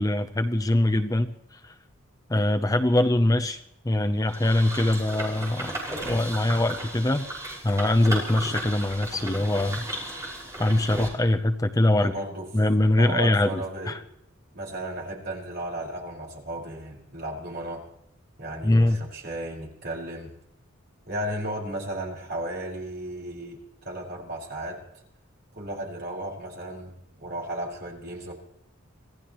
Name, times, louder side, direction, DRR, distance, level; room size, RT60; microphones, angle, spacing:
voice 1, 0.0-1.7 2.3-5.7 6.0-7.3 7.6-9.9 10.6-12.1 12.5-14.0 18.6-19.0, left 1 dB, 15° left, 6 dB, 0.7 m, -23 dB
sound 1, 4.3-11.1, right 1 dB, 15° right, 5.6 m, -35 dB
voice 2, 5.9-6.3 11.9-12.5 13.0-14.0 14.5-17.9 18.4-20.3 21.0-24.8 25.5-28.3, right 1 dB, 50° right, -2 dB, 5.2 m, -34 dB
26.0 x 17.0 x 3.1 m, 0.80 s
head